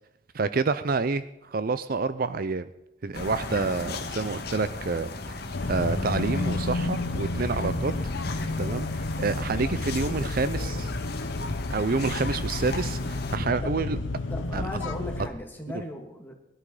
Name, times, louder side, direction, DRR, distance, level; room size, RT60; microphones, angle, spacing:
voice 1, 0.3-2.7 3.0-5.1 5.7-7.9 8.3-10.9 11.7-14.0 14.5-14.6, right 4 dB, 50° right, 14 dB, 0.5 m, -28 dB
sound 1, 3.1-13.4, left 3 dB, 55° left, 1.6 m, -37 dB
sound 2, 5.5-15.3, left 2 dB, 90° left, 1.0 m, -31 dB
voice 2, 14.3-16.3, left 1 dB, 10° left, 1 dB, 2.6 m, -37 dB
20.5 x 12.0 x 4.9 m, 0.88 s
head